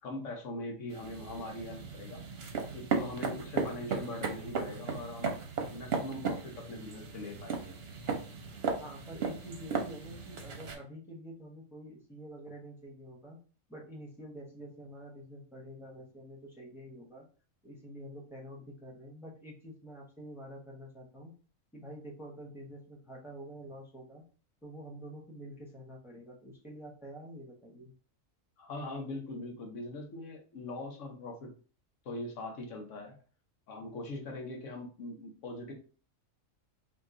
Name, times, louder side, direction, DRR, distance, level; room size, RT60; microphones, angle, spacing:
voice 1, 0.0-2.2 2.7-5.3 5.7-7.7 28.6-31.5 32.0-33.2 33.7-35.7, left 2 dB, 70° left, 2 dB, 1.2 m, -41 dB
sound 1, 0.9-10.7, right 5 dB, 55° right, 0.8 m, -36 dB
voice 2, 8.8-13.4 13.7-17.2 17.6-21.3 21.7-24.2 24.6-28.0, equal, ahead, -3 dB, 0.8 m, -47 dB
2.9 x 2.6 x 3.6 m, 0.37 s
omnidirectional pair, 1.4 m